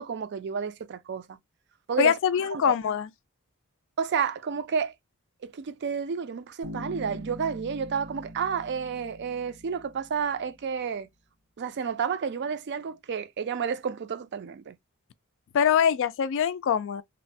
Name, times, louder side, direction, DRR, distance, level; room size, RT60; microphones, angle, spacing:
voice 1, 0.0-1.4 1.9-2.2 2.5-2.6 4.0-4.9 5.4-11.1 11.6-14.8, right 6 dB, 50° right, 0.4 m, -31 dB
voice 2, 2.0-3.1 15.5-17.0, left 8 dB, 60° left, 0.3 m, -23 dB
Bass guitar, 6.6-10.4, equal, 90° right, 1.1 m, -42 dB
3.0 x 2.1 x 2.5 m
head